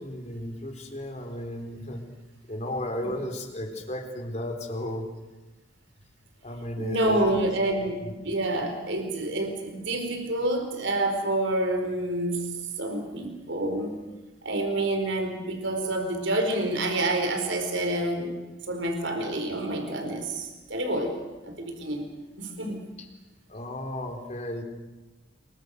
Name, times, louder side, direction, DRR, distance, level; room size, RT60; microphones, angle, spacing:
voice 1, 0.0-2.0 2.5-5.0 6.4-7.4 8.0-8.1 23.0-23.1 23.5-24.6, left 1 dB, 35° left, 3 dB, 3.8 m, -34 dB
voice 2, 6.8-8.0 8.2-14.0 14.4-18.4 18.7-21.1 21.5-22.1 22.4-22.8, right 1 dB, 65° right, 5 dB, 4.5 m, -28 dB
28.0 x 23.0 x 6.7 m, 1.1 s
head